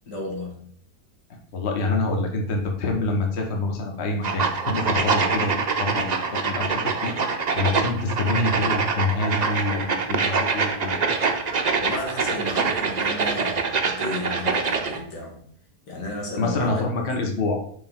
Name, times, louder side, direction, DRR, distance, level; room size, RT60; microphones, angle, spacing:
voice 1, 0.1-0.7 11.8-15.4 15.9-16.8, left 1 dB, 85° left, -1 dB, 2.4 m, -33 dB
voice 2, 1.5-11.0 16.4-17.6, left 3 dB, 45° left, 2 dB, 1.4 m, -26 dB
sound 1, 4.2-15.0, right 5 dB, 50° right, 0.5 m, -24 dB
6.8 x 5.5 x 3.7 m, 0.63 s
omnidirectional pair, 1.8 m